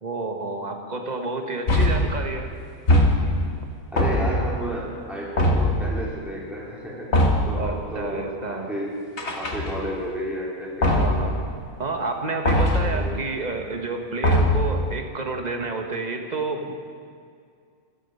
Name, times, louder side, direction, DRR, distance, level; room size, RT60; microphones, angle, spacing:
voice 1, 0.0-2.5 7.6-8.7 10.8-11.4 11.8-16.7, right 3 dB, 30° right, 4 dB, 1.3 m, -30 dB
sound 1, 1.7-2.2 2.9-3.5 4.0-4.6 5.4-5.9 7.1-7.6 9.2-10.0 10.8-11.3 12.4-13.0 14.2-14.8, left 1 dB, 50° left, 1.8 m, -20 dB
voice 2, 3.9-7.2 7.5-9.0 9.3-11.3 12.8-13.2, equal, ahead, -5 dB, 3.3 m, -32 dB
14.5 x 12.5 x 5.5 m, 2.3 s
omnidirectional pair, 1.6 m